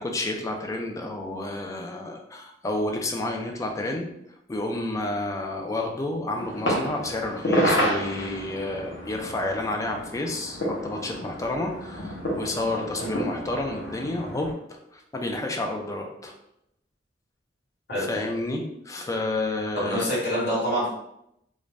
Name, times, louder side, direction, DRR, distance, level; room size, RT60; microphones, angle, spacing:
voice 1, 0.0-4.1 4.5-16.3 18.0-20.1, left 2 dB, 20° left, 2 dB, 0.3 m, -30 dB
sound 1, 6.3-14.5, equal, 85° left, 0.7 m, -30 dB
voice 2, 19.8-20.9, equal, 60° left, -7 dB, 1.2 m, -26 dB
2.5 x 2.1 x 3.2 m, 0.78 s
head